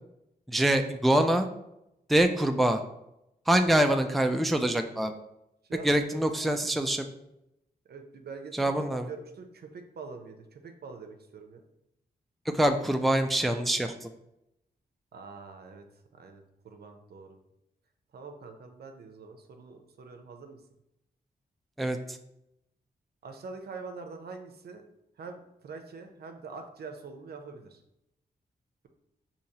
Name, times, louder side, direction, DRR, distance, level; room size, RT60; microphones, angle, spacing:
voice 1, 0.5-1.5 2.1-2.8 3.5-5.1 5.8-7.1 8.5-9.1 12.5-14.1 21.8-22.0, right 1 dB, ahead, 6 dB, 0.4 m, -25 dB
voice 2, 5.7-6.3 7.9-11.6 15.1-15.8 16.1-17.4 18.1-20.6 23.2-24.8 25.2-27.8, right 4 dB, 70° right, 5 dB, 0.6 m, -44 dB
5.1 x 2.8 x 2.8 m, 0.85 s
cardioid pair, 60°, 17 cm